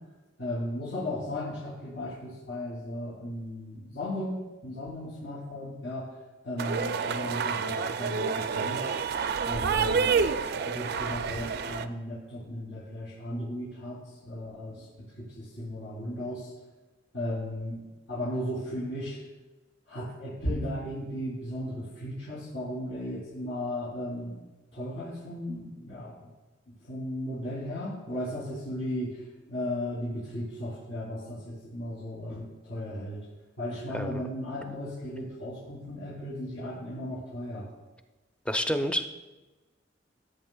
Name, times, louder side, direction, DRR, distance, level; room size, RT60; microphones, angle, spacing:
voice 1, 0.4-6.1 6.4-8.9 9.4-10.3 10.6-14.8 15.2-16.5 17.1-17.8 18.1-19.2 19.9-24.4 24.7-26.1 26.9-29.2 29.5-33.2 33.6-37.7, left 1 dB, 85° left, -9 dB, 3.0 m, -35 dB
sound 1, 6.6-11.9, right 5 dB, 55° right, 0.4 m, -28 dB
voice 2, 33.9-34.3 38.5-39.2, equal, 5° left, 7 dB, 0.5 m, -29 dB
16.0 x 8.1 x 2.3 m, 1.1 s
head